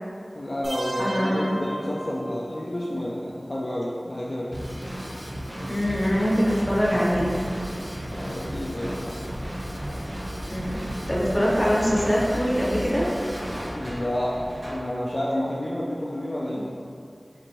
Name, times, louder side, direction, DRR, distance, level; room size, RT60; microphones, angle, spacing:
voice 1, 0.3-4.5 8.1-9.2 13.7-16.7, left 1 dB, 55° left, -6 dB, 0.4 m, -30 dB
sound 1, 0.6-2.6, right 1 dB, 85° right, 0.8 m, -35 dB
voice 2, 1.0-1.6 5.6-7.4 10.5-10.8 11.1-13.1, equal, 25° left, -7 dB, 0.9 m, -23 dB
Drum kit / Drum, 4.5-13.7, equal, 25° right, 0.6 m, -35 dB
sound 2, 5.8-14.8, equal, 55° right, 1.3 m, -38 dB
4.5 x 2.9 x 2.6 m, 2.4 s
wide cardioid pair, 40°, 0 cm